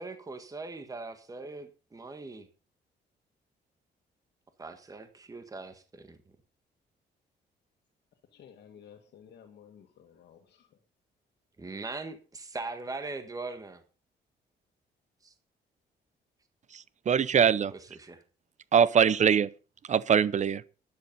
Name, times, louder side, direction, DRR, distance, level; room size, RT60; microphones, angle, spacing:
voice 1, 0.0-2.5 4.6-6.2 11.6-13.8 15.2-15.3 18.0-18.2, right 3 dB, 20° right, 1.6 m, -40 dB
voice 2, 8.2-10.8, left 8 dB, 75° left, 1.9 m, -54 dB
voice 3, 16.7-17.7 18.7-19.5 19.9-20.6, right 7 dB, 45° right, 0.7 m, -23 dB
11.5 x 10.5 x 5.4 m
cardioid pair, 120°, 18 cm